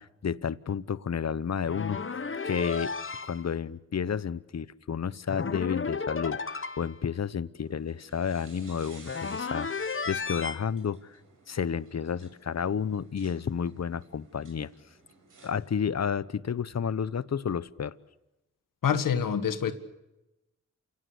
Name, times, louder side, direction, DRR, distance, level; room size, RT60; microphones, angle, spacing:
voice 1, 0.0-2.1 2.4-2.9 3.2-11.2 11.5-14.7 15.4-18.0, left 7 dB, 55° left, 1.0 m, -31 dB
sound 1, 1.6-3.4 5.3-7.0 9.1-10.6, left 4 dB, 40° left, 1.3 m, -33 dB
sound 2, 7.6-15.5, right 3 dB, 75° right, 6.0 m, -55 dB
voice 2, 18.8-19.7, left 7 dB, 85° left, 1.8 m, -26 dB
28.5 x 17.5 x 8.3 m
cardioid pair, 50°, 32 cm